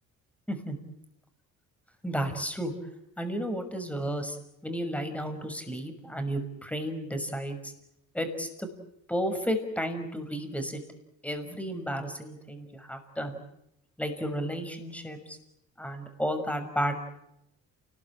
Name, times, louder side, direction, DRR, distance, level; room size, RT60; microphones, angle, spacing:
voice 1, 2.0-2.7 3.2-4.4 4.6-7.7 8.1-8.7 9.1-10.8 11.2-13.4 14.0-15.4 15.8-17.0, equal, 5° left, 7 dB, 6.2 m, -32 dB
29.0 x 21.0 x 9.2 m, 0.81 s
cardioid pair, 90°, 30 cm